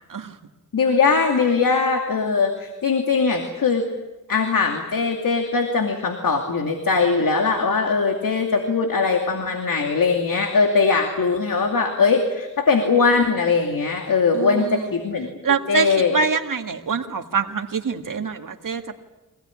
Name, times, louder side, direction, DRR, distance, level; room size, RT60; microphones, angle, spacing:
voice 1, 0.7-3.9 4.3-15.3 15.7-16.1, left 4 dB, 75° left, 3 dB, 2.6 m, -20 dB
voice 2, 14.3-14.9 15.4-19.0, right 5 dB, 70° right, 5 dB, 1.9 m, -25 dB
24.5 x 18.0 x 9.9 m, 1.1 s
wide cardioid pair, 95°, 33 cm